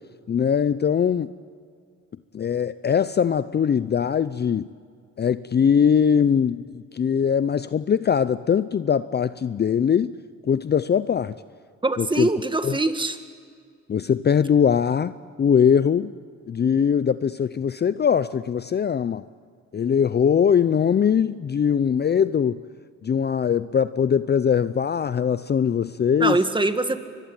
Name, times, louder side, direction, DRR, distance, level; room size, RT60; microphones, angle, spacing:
voice 1, 0.3-1.3 2.3-4.7 5.2-10.1 10.4-11.3 12.0-12.3 12.6-12.8 13.9-16.1 16.5-19.2 19.7-22.6 23.0-26.4, left 7 dB, 35° left, 15 dB, 0.6 m, -21 dB
voice 2, 11.8-13.2 26.2-27.0, right 2 dB, 15° right, 9 dB, 1.9 m, -23 dB
25.0 x 21.5 x 9.0 m, 2.1 s
cardioid pair, 90°, 30 cm